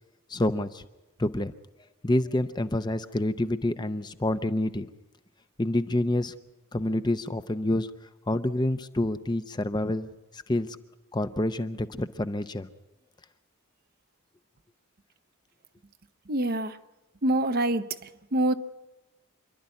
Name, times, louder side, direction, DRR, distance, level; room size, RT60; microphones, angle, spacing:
voice 1, 0.3-0.8 1.2-1.5 2.0-4.9 5.6-6.3 6.7-7.9 8.3-10.1 10.3-10.8 11.1-12.7, left 1 dB, 20° left, 10 dB, 0.6 m, -27 dB
voice 2, 16.3-16.8 17.2-17.9 18.3-18.5, right 1 dB, 45° right, 11 dB, 0.8 m, -25 dB
27.0 x 12.0 x 9.7 m, 1.0 s
head